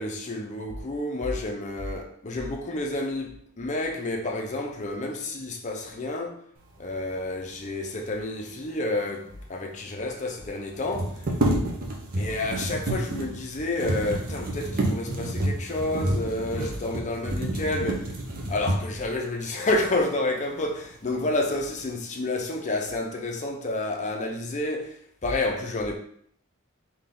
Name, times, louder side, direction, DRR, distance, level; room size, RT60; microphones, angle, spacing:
voice 1, 0.0-6.4 6.8-11.2 12.1-18.1 18.5-26.0, left 2 dB, 35° left, 0.6 m, -30 dB
sound 1, 9.3-9.4 9.5-9.6 10.7-19.1 19.8-19.9 20.3-21.0 21.3-21.9, right 1 dB, 40° right, 0.7 m, -29 dB
3.5 x 2.8 x 3.7 m
head